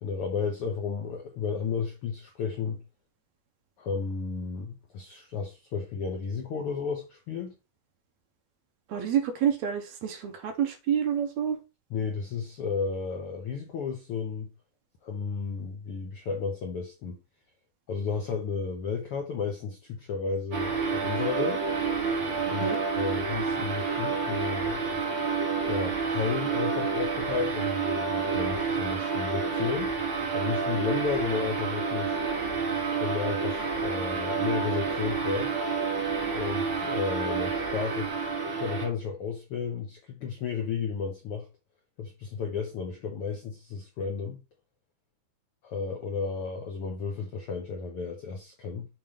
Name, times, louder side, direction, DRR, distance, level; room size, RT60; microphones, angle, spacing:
voice 1, 0.0-2.8 3.8-7.5 11.9-14.5 15.0-17.2 17.9-21.7 22.5-22.7 23.0-24.8 25.7-29.9 30.3-32.2 33.0-35.5 36.3-41.5 42.0-44.4 45.6-48.9, left 5 dB, 75° left, 1.3 m, -33 dB
voice 2, 8.9-11.6 22.5-22.8, right 8 dB, 70° right, 2.0 m, -28 dB
sound 1, 20.5-38.9, right 5 dB, 40° right, 2.4 m, -29 dB
7.1 x 3.1 x 5.0 m
omnidirectional pair, 3.7 m